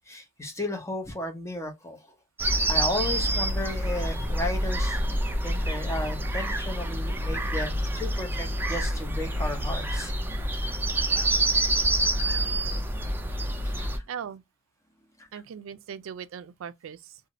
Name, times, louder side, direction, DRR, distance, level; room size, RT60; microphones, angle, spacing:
voice 1, 0.1-2.0 2.4-10.1 13.6-14.0 15.2-15.3, left 1 dB, 15° left, 0.8 m, -34 dB
sound 1, 2.4-14.0, right 1 dB, 10° right, 0.4 m, -27 dB
voice 2, 14.1-14.4 15.3-17.2, right 7 dB, 80° right, 0.3 m, -39 dB
2.6 x 2.4 x 2.9 m
head